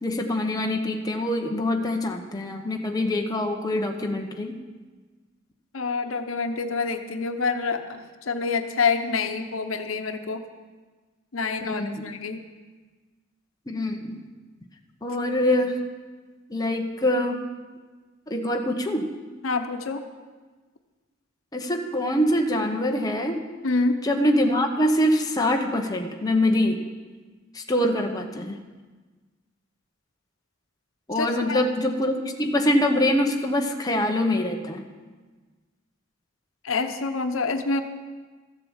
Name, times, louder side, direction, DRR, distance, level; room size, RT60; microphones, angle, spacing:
voice 1, 0.0-4.6 11.6-12.1 13.7-14.2 15.0-15.8 16.5-17.4 18.3-19.1 21.5-23.4 24.0-26.8 27.5-28.6 31.1-34.8, left 1 dB, 20° left, 2 dB, 1.0 m, -24 dB
voice 2, 5.7-8.0 8.3-10.4 11.3-12.4 19.4-20.0 23.6-24.0 31.2-31.6 36.6-37.8, left 4 dB, 90° left, 7 dB, 0.9 m, -27 dB
14.0 x 7.7 x 7.2 m, 1.3 s
head